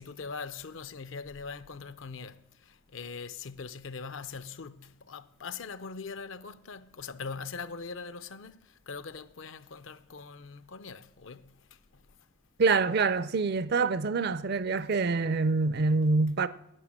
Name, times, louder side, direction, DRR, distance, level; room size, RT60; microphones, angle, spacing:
voice 1, 0.0-12.0, left 5 dB, 65° left, 0.6 m, -42 dB
voice 2, 12.6-16.5, right 4 dB, 50° right, 0.5 m, -26 dB
11.0 x 9.0 x 7.3 m
head